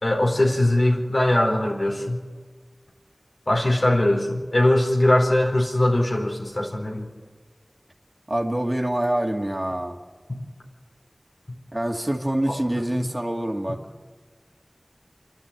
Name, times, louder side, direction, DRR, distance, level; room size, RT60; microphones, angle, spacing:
voice 1, 0.0-2.2 3.5-7.1 10.3-10.4 12.5-12.6 13.0-13.1, left 1 dB, 65° left, 0 dB, 4.3 m, -21 dB
voice 2, 8.3-10.0 11.7-13.8, right 1 dB, 30° right, 2 dB, 2.2 m, -25 dB
28.0 x 12.0 x 9.1 m, 1.5 s
wide cardioid pair, 40°, 0 cm